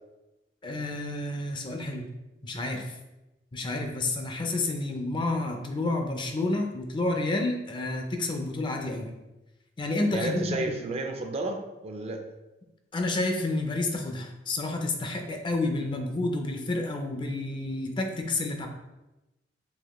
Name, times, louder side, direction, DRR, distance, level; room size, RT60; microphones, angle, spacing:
voice 1, 0.6-2.1 2.4-2.9 3.5-9.2 9.8-10.6 12.9-18.7, left 2 dB, 25° left, 4 dB, 0.4 m, -30 dB
voice 2, 10.1-12.2, right 2 dB, 35° right, 4 dB, 0.4 m, -32 dB
4.0 x 2.8 x 3.0 m, 1.0 s
head